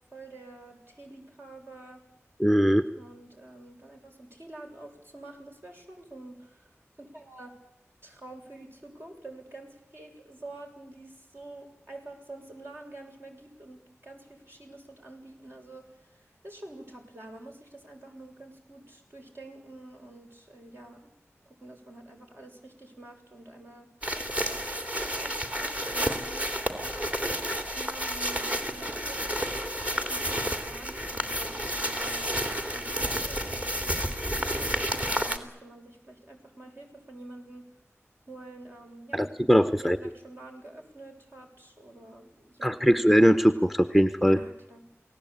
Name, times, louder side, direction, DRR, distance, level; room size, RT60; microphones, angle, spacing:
voice 1, 0.1-2.0 2.9-7.5 8.0-21.1 21.5-23.9 24.5-24.6 25.0-27.1 27.6-29.2 30.0-32.2 32.7-37.6 38.3-42.9 44.2-44.9, right 2 dB, 50° right, 1 dB, 7.2 m, -48 dB
voice 2, 2.4-2.8 39.1-40.0 42.6-44.4, equal, 5° right, 10 dB, 1.0 m, -21 dB
sound 1, 24.0-35.4, equal, 25° right, 3.0 m, -31 dB
28.5 x 18.5 x 9.0 m, 0.94 s
wide cardioid pair, 75°, 5 cm